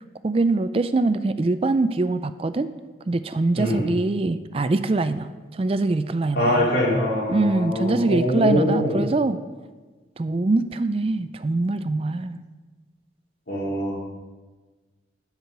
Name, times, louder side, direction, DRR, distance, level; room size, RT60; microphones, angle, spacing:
voice 1, 0.2-2.7 3.1-6.7 7.3-9.4 10.2-12.4, right 2 dB, 30° right, 12 dB, 0.4 m, -23 dB
voice 2, 3.6-3.9 6.3-9.0 13.5-14.0, left 1 dB, 70° left, -4 dB, 3.1 m, -23 dB
11.5 x 4.8 x 6.7 m, 1.3 s
head